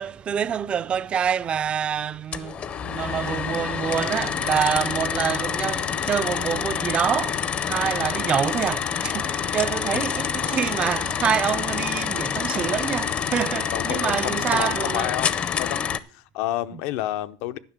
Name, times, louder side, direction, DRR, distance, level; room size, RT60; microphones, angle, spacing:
voice 1, 0.0-2.6 2.9-15.1, right 8 dB, 25° right, 0.4 m, -26 dB
sound 1, 2.3-16.0, left 7 dB, 30° left, 0.6 m, -27 dB
voice 2, 13.7-15.8 16.1-17.6, left 14 dB, 70° left, 0.7 m, -30 dB
11.0 x 5.9 x 7.2 m
cardioid pair, 145°, 4 cm